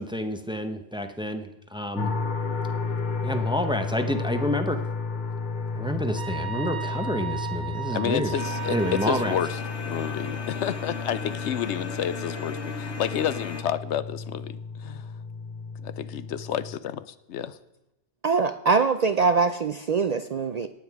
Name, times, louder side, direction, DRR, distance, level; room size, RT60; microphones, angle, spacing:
voice 1, 0.0-2.1 3.2-4.8 5.7-8.3 8.7-9.4, equal, 5° right, 7 dB, 0.7 m, -29 dB
sound 1, 2.0-16.8, left 4 dB, 45° left, 0.9 m, -33 dB
sound 2, 6.2-9.4, right 10 dB, 70° right, 1.4 m, -35 dB
voice 2, 7.9-9.6 9.8-15.1 15.8-17.6, left 9 dB, 90° left, 15 dB, 1.0 m, -30 dB
sound 3, 8.4-13.6, left 5 dB, 75° left, 1.3 m, -37 dB
voice 3, 18.2-20.7, right 4 dB, 55° right, 10 dB, 0.4 m, -23 dB
18.5 x 7.4 x 4.7 m, 0.91 s
omnidirectional pair, 1.2 m